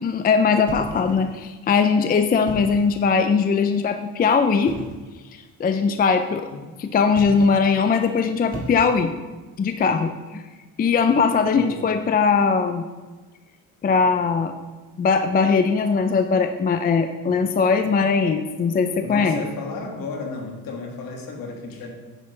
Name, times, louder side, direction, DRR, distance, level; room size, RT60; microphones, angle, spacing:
voice 1, 0.0-4.8 5.3-6.5 6.8-9.1 9.6-10.4 10.8-12.8 13.8-14.5 15.0-19.4, left 5 dB, 25° left, 7 dB, 0.4 m, -20 dB
sound 1, 0.7-1.5 2.3-3.0 4.6-5.1 7.1-7.7 8.5-9.2, right 2 dB, 20° right, 1.8 m, -36 dB
voice 2, 11.5-11.9 19.0-21.9, left 3 dB, 65° left, 2 dB, 2.1 m, -33 dB
9.9 x 9.3 x 3.2 m, 1.3 s
cardioid pair, 130°, 37 cm